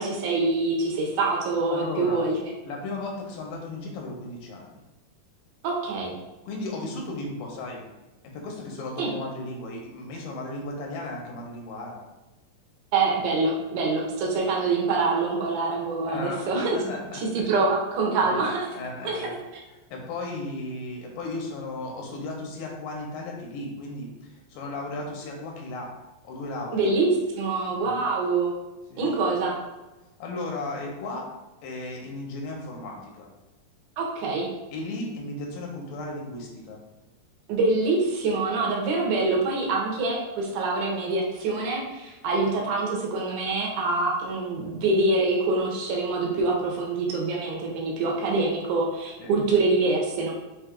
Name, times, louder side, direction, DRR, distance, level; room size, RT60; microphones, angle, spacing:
voice 1, 0.0-2.4 5.6-6.1 9.0-9.1 12.9-16.8 17.1-18.7 19.0-19.3 26.7-28.5 29.0-29.5 34.0-34.5 37.5-50.3, right 3 dB, 70° right, -2 dB, 2.0 m, -25 dB
voice 2, 1.7-2.2 2.6-4.8 6.4-7.8 8.2-12.0 16.0-17.5 18.2-18.5 18.7-19.3 19.7-25.9 26.2-26.8 27.8-28.0 28.9-29.1 30.2-31.3 31.6-33.3 34.7-36.8 49.2-49.4, left 2 dB, 75° left, 0 dB, 2.2 m, -35 dB
6.0 x 3.2 x 2.4 m, 1.1 s
omnidirectional pair, 4.2 m